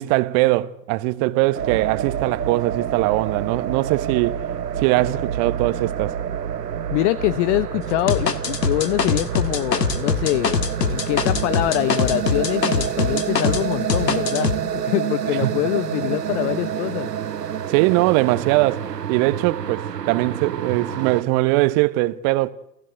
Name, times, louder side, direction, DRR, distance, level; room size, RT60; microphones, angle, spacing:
voice 1, 0.0-4.4 4.8-6.2 15.4-15.5 17.7-22.5, right 19 dB, 40° right, 1.3 m, -21 dB
sound 1, 1.5-21.2, right 9 dB, 90° right, 0.8 m, -28 dB
voice 2, 6.9-17.1, left 18 dB, 45° left, 0.8 m, -24 dB
sound 2, 8.1-13.6 13.9-14.6, left 5 dB, 85° left, 1.8 m, -23 dB
28.0 x 16.5 x 8.1 m
hypercardioid pair, 100°, 48 cm